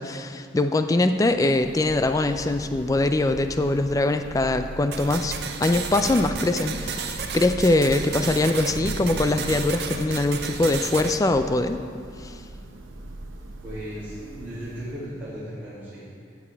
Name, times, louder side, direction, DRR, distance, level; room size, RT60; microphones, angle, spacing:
voice 1, 0.0-5.4 5.6-11.8 12.2-12.4, left 2 dB, 15° left, 9 dB, 0.3 m, -22 dB
Thunder / Rain, 1.1-15.5, right 1 dB, 90° right, 0.8 m, -40 dB
sound 1, 4.9-11.2, right 5 dB, 55° right, 0.6 m, -33 dB
voice 2, 13.6-16.3, equal, 10° right, -14 dB, 2.7 m, -36 dB
15.5 x 7.0 x 3.4 m, 2.4 s
head